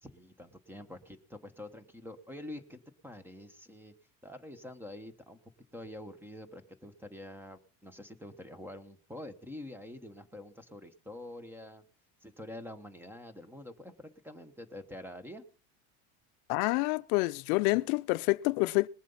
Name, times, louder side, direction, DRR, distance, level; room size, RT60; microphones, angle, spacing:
voice 1, 0.0-3.9 4.2-5.4 5.7-11.8 12.2-15.4, left 1 dB, 5° right, 1.0 m, -46 dB
voice 2, 16.5-18.9, left 23 dB, 70° left, 0.6 m, -28 dB
19.5 x 7.3 x 5.5 m
supercardioid pair, 135°, 46 cm